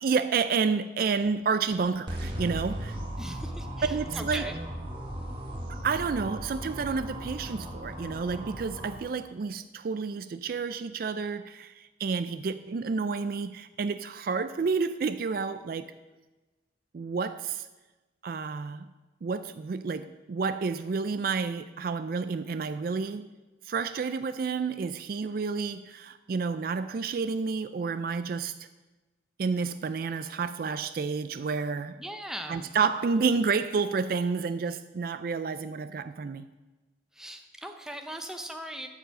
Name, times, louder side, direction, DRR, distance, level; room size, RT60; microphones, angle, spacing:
voice 1, 0.0-3.0 3.9-4.4 5.7-15.9 16.9-17.7 18.2-18.8 19.2-23.3 23.6-28.6 29.4-32.0 32.5-36.5, right 5 dB, 50° right, 0.3 m, -30 dB
sound 1, 2.1-8.9, right 1 dB, 25° right, 1.7 m, -37 dB
voice 2, 3.2-4.6 32.0-32.7 37.1-38.9, right 1 dB, 5° right, 0.7 m, -39 dB
12.5 x 4.7 x 7.5 m
head